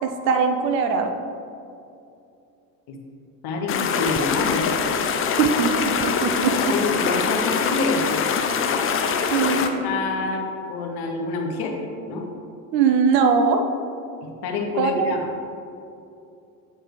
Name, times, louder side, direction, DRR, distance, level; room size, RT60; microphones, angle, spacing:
voice 1, 0.0-1.1 5.4-6.7 9.3-9.9 12.7-13.6 14.8-15.1, right 5 dB, 80° right, 6 dB, 0.8 m, -21 dB
voice 2, 3.4-4.7 6.7-8.2 9.8-11.8 12.1-12.3 14.4-15.2, left 3 dB, 50° left, 2 dB, 1.2 m, -27 dB
sound 1, 3.7-9.7, left 6 dB, 30° left, 0.5 m, -23 dB
7.7 x 4.6 x 3.3 m, 2.6 s
hypercardioid pair, 80°, 48 cm